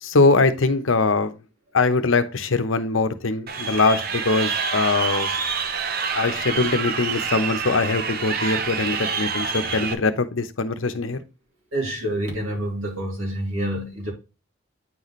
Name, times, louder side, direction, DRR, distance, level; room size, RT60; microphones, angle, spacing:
voice 1, 0.0-1.4 1.7-5.3 6.1-11.2, left 3 dB, 75° left, 0.8 m, -22 dB
Crowd, 3.5-9.9, right 5 dB, 45° right, 0.7 m, -27 dB
voice 2, 11.7-14.1, right 1 dB, 85° right, 3.1 m, -27 dB
9.0 x 4.2 x 3.1 m
head